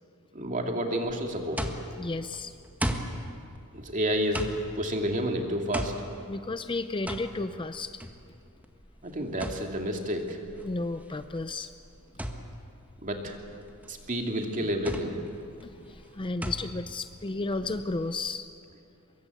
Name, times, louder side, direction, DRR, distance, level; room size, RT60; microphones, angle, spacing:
voice 1, 0.3-1.6 3.7-4.4 4.8-5.9 9.0-10.4 13.0-13.4 13.9-15.2, equal, 35° right, 3 dB, 2.6 m, -30 dB
sound 1, 1.0-18.3, equal, 5° right, 1.5 m, -38 dB
voice 2, 2.0-2.5 6.3-7.9 10.6-11.7 14.6-14.7 15.6-18.5, left 3 dB, 20° left, 10 dB, 0.6 m, -33 dB
24.0 x 22.5 x 8.3 m, 2.4 s
head